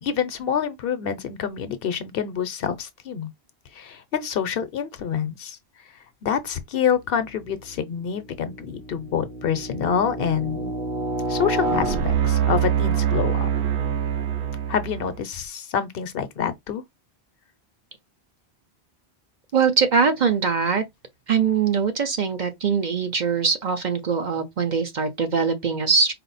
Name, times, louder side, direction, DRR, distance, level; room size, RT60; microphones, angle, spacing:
voice 1, 0.0-3.3 3.7-5.6 6.2-10.7 11.3-13.5 14.7-16.8, left 8 dB, 65° left, 0.8 m, -27 dB
sound 1, 7.4-7.8 8.4-15.2, right 6 dB, 90° right, 1.0 m, -25 dB
voice 2, 19.5-20.8 21.3-26.1, right 5 dB, 50° right, 0.7 m, -22 dB
4.3 x 2.0 x 4.0 m
omnidirectional pair, 1.1 m